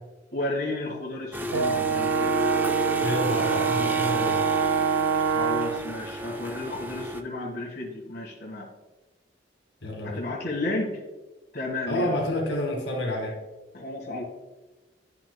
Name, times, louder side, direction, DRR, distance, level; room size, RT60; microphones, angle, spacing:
voice 1, 0.3-2.3 5.2-8.7 10.0-11.0 11.5-12.2 13.7-14.2, left 2 dB, 55° left, -5 dB, 1.7 m, -32 dB
sound 1, 1.3-7.2, equal, 10° right, 0.3 m, -33 dB
Brass instrument, 1.5-5.9, right 6 dB, 90° right, 0.4 m, -25 dB
voice 2, 3.0-4.4 9.8-10.2 11.9-13.4, left 1 dB, 80° left, 0 dB, 2.0 m, -29 dB
11.0 x 5.9 x 2.2 m, 1.1 s
head